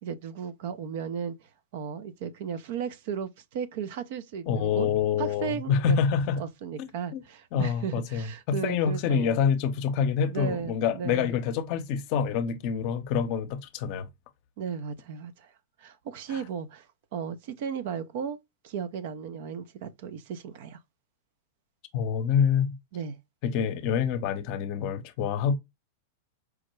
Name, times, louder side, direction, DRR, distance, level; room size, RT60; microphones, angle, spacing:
voice 1, 0.0-1.3 1.7-4.9 5.2-6.0 6.4-9.4 10.3-11.4 14.6-15.5 15.8-16.9 17.1-18.4 18.6-20.8 22.9-23.2, right 7 dB, 60° right, 0.6 m, -35 dB
voice 2, 4.5-6.4 6.8-7.2 7.5-14.1 16.3-16.4 21.9-22.8 23.4-25.5, left 7 dB, 50° left, 0.7 m, -27 dB
4.8 x 2.1 x 3.1 m
hypercardioid pair, 120°, 0 cm